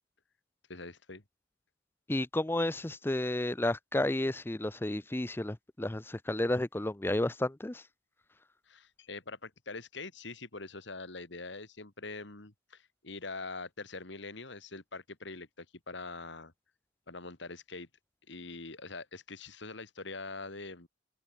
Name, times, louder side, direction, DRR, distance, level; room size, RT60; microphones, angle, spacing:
voice 1, 0.7-1.2 8.7-16.5 17.1-17.9 18.3-20.9, left 3 dB, 60° left, 2.3 m, -44 dB
voice 2, 2.1-7.8, left 1 dB, 10° left, 0.5 m, -32 dB
head